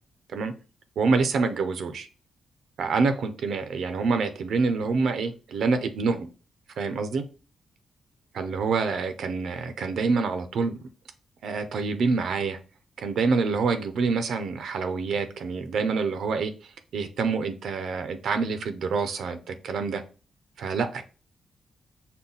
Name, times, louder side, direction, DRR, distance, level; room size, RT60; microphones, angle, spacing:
voice 1, 1.0-2.1 2.8-6.3 6.8-7.2 8.3-10.8 11.4-12.6 13.0-16.5 16.9-20.0 20.6-21.1, right 4 dB, 75° right, 9 dB, 0.5 m, -26 dB
5.5 x 2.2 x 3.9 m, 0.35 s
cardioid pair, 125°, 0 cm